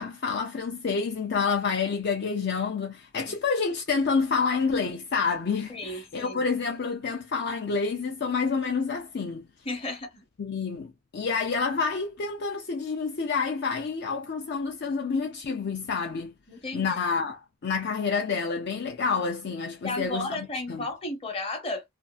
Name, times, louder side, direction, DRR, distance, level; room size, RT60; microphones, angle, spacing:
voice 1, 0.0-9.4 10.4-16.3 16.7-20.8, left 5 dB, 50° left, 0.4 m, -28 dB
voice 2, 5.7-6.4 9.6-10.2 16.5-17.0 19.8-21.8, left 2 dB, 25° left, 0.8 m, -34 dB
2.6 x 2.4 x 2.3 m
head